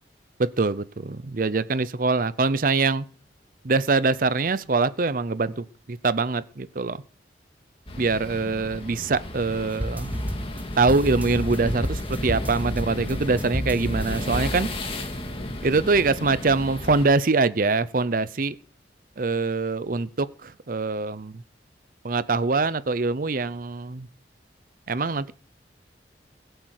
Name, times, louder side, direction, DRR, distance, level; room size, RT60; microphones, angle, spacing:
voice 1, 0.4-3.0 3.6-7.0 8.0-10.2 10.8-14.7 15.6-18.6 19.2-21.4 22.0-24.1 24.9-25.3, right 3 dB, 50° right, 16 dB, 0.7 m, -24 dB
sound 1, 7.9-17.1, left 1 dB, 30° left, 2.4 m, -34 dB
sound 2, 9.7-15.0, equal, 10° right, 1.2 m, -32 dB
20.5 x 8.0 x 6.5 m, 0.42 s
head